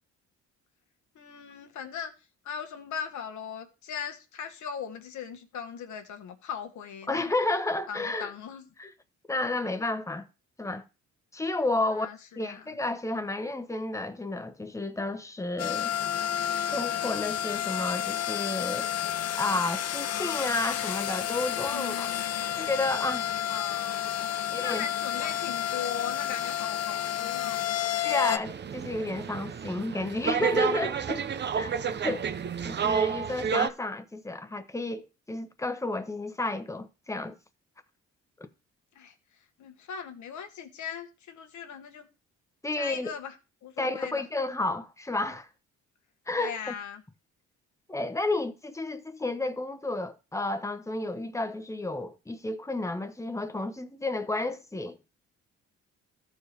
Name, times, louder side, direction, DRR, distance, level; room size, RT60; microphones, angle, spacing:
voice 1, 1.1-2.1 2.4-7.3 7.9-8.7 11.9-12.8 21.7-22.5 23.5-27.8 38.9-39.1 39.6-42.1 42.8-43.4 43.6-44.2 46.4-47.0, left 7 dB, 75° left, 1.5 m, -39 dB
voice 2, 7.1-8.3 8.8-8.9 9.3-10.3 10.6-10.8 11.3-12.1 12.4-15.9 16.7-18.9 19.3-22.1 22.6-23.3 24.5-24.8 25.2-25.3 28.0-31.2 31.5-31.7 32.0-32.3 32.6-37.4 38.4-38.5 42.6-43.1 43.8-45.5 46.3-46.7 47.9-55.0, left 2 dB, 10° left, 1.0 m, -31 dB
sound 1, 15.6-28.4, left 11 dB, 55° left, 0.7 m, -30 dB
sound 2, 28.4-33.7, right 7 dB, 35° right, 0.6 m, -30 dB
14.0 x 4.7 x 3.4 m
cardioid pair, 90°, 30 cm